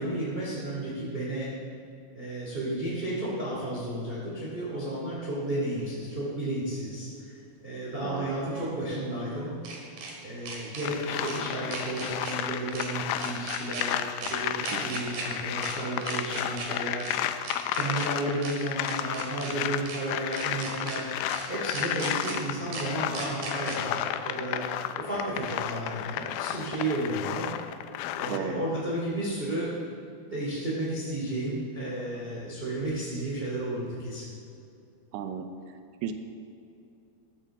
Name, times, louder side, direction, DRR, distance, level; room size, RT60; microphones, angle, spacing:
voice 1, 0.0-1.5 2.1-7.4 7.6-9.5 10.2-17.4 17.7-21.1 21.5-24.6 25.0-27.5 28.2-29.7 30.3-34.3, right 1 dB, 20° right, -7 dB, 1.9 m, -33 dB
sound 1, 5.8-5.9 8.3-10.1 10.5-10.9 11.2-11.4 11.7-12.4 12.7-12.9 13.2-13.8 14.2-14.3 14.6-15.2 15.6-15.7 16.0-16.7 17.0-17.1 17.4-18.1 18.4-18.5 18.8-19.5 19.9-20.0 20.3-21.0 21.3-21.4 21.7-22.3 22.7-22.8 23.1-23.8, right 4 dB, 55° right, 3.3 m, -37 dB
voice 2, 8.0-8.4 14.7-15.0 28.3-28.6 35.1-35.5 36.0-36.1, right 8 dB, 80° right, 7 dB, 2.8 m, -34 dB
sound 2, 10.8-28.4, left 11 dB, 80° left, 2.7 m, -33 dB
14.5 x 13.5 x 3.8 m, 2.7 s
omnidirectional pair, 5.0 m